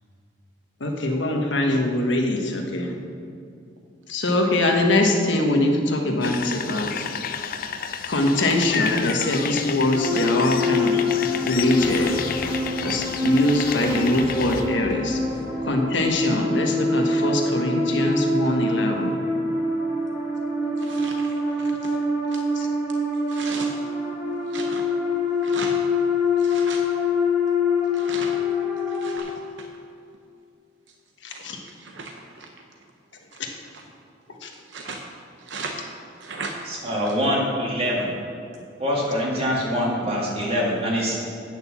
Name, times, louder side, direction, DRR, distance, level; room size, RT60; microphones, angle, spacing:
voice 1, 0.8-2.9 4.1-7.0 8.1-11.0 11.4-12.1 12.8-15.2 15.6-19.1 22.6-22.7 31.2-31.6 34.4-34.5, left 1 dB, 75° left, 2 dB, 1.3 m, -23 dB
sound 1, 6.2-14.6, left 7 dB, 50° left, 0.5 m, -31 dB
sound 2, 9.9-29.2, left 3 dB, 10° right, 1.6 m, -25 dB
sound 3, 11.1-16.0, equal, 15° left, 1.4 m, -37 dB
voice 2, 20.8-21.9 22.3-22.4 23.3-23.7 24.5-24.8 25.4-25.7 26.4-26.8 27.9-28.4 29.0-29.3 29.6-29.7 31.3-31.4 31.8-32.1 32.4-32.5 33.7-33.8 34.7-35.0 35.5-35.7 36.2-36.5, right 4 dB, 75° right, 2 dB, 0.8 m, -36 dB
voice 3, 36.6-38.1 38.8-41.2, equal, 30° right, -4 dB, 2.1 m, -24 dB
9.0 x 6.5 x 7.1 m, 2.5 s
head